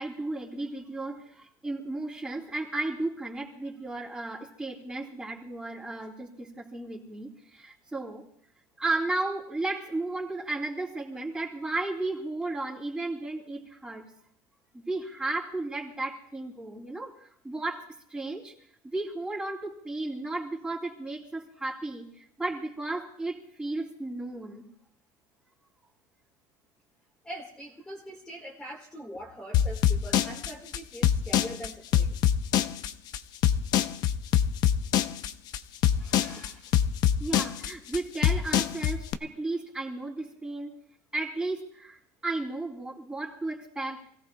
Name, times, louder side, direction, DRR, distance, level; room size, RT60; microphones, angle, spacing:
voice 1, 0.0-8.2 8.8-14.0 14.7-18.5 18.8-22.1 22.4-24.6 37.2-40.7 41.1-44.2, right 2 dB, 10° right, -1 dB, 3.0 m, -34 dB
voice 2, 27.2-32.2 35.9-36.8, equal, 10° left, -3 dB, 1.9 m, -43 dB
sound 1, 29.5-39.1, left 10 dB, 45° left, 0.7 m, -24 dB
28.0 x 17.0 x 2.3 m, 0.64 s
cardioid pair, 145°, 9 cm